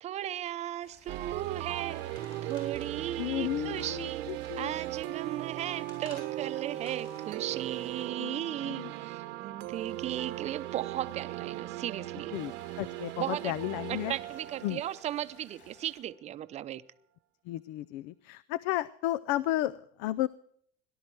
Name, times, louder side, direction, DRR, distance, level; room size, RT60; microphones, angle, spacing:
voice 1, 0.0-4.3 4.6-12.3 13.2-13.5 13.9-16.8, right 12 dB, 35° right, 14 dB, 0.7 m, -36 dB
sound 1, 0.8-8.1 12.3-16.0, left 3 dB, 45° left, 5.1 m, -61 dB
sound 2, 1.1-4.8 5.2-7.3, left 3 dB, 25° left, 6.6 m, -55 dB
sound 3, 1.1-15.9, right 15 dB, 70° right, 0.9 m, -38 dB
voice 2, 3.2-4.7 8.2-8.9 12.3-12.5 12.8-14.1 14.6-14.8 17.5-20.3, left 14 dB, 70° left, 19 dB, 0.5 m, -33 dB
18.0 x 12.0 x 4.7 m, 0.63 s
cardioid pair, 140°, 18 cm